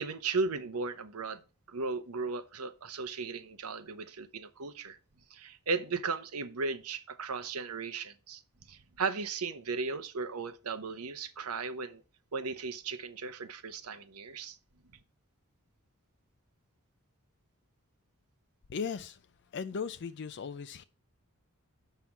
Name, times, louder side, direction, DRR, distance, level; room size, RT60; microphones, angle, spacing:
voice 1, 0.0-1.4 1.7-5.0 5.3-8.4 8.7-12.0 12.3-14.6, right 4 dB, 85° right, 0.9 m, -36 dB
voice 2, 18.7-19.2 19.5-20.8, left 6 dB, 50° left, 0.4 m, -37 dB
7.5 x 5.7 x 4.4 m
head